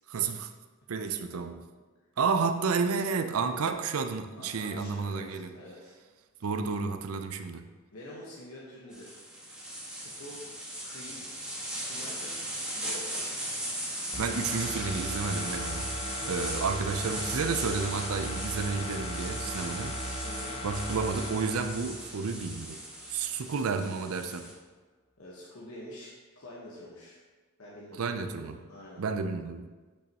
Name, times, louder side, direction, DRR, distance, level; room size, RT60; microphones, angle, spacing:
voice 1, 0.1-0.5 0.9-1.6 2.2-5.5 6.4-7.6 14.2-15.9 16.2-20.0 20.6-22.8 23.1-24.5 28.0-28.6 29.0-29.6, right 5 dB, 90° right, 8 dB, 0.5 m, -31 dB
voice 2, 4.3-5.9 6.4-6.5 7.9-9.2 9.9-10.4 10.8-11.2 11.8-12.5 12.8-13.2 20.2-20.6 25.2-26.1 26.4-27.2 27.6-29.0, left 1 dB, 75° left, -5 dB, 1.2 m, -47 dB
sound 1, 8.9-24.5, right 1 dB, 5° right, 1.5 m, -38 dB
sound 2, 14.1-22.8 23.2-23.3, equal, 25° left, 0.8 m, -38 dB
8.4 x 6.1 x 2.9 m, 1.3 s
head